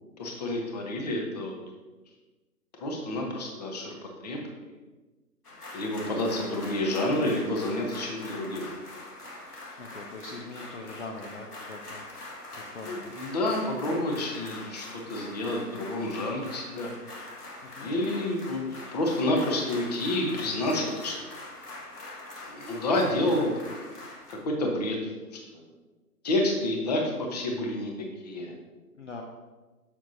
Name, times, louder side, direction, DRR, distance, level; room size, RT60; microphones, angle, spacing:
voice 1, 0.2-1.5 2.8-4.6 5.7-8.7 12.8-16.9 17.8-21.1 22.5-23.5 24.4-25.1 25.5-25.6 26.2-27.9 28.2-28.5, left 1 dB, 25° left, 1 dB, 1.0 m, -29 dB
sound 1, 5.4-24.3, left 2 dB, 70° left, 1.8 m, -43 dB
voice 2, 9.8-13.3 17.6-17.9 29.0-29.2, left 3 dB, 50° left, 2 dB, 0.7 m, -43 dB
7.2 x 7.1 x 2.7 m, 1.2 s
figure-of-eight pair, 135°, 48 cm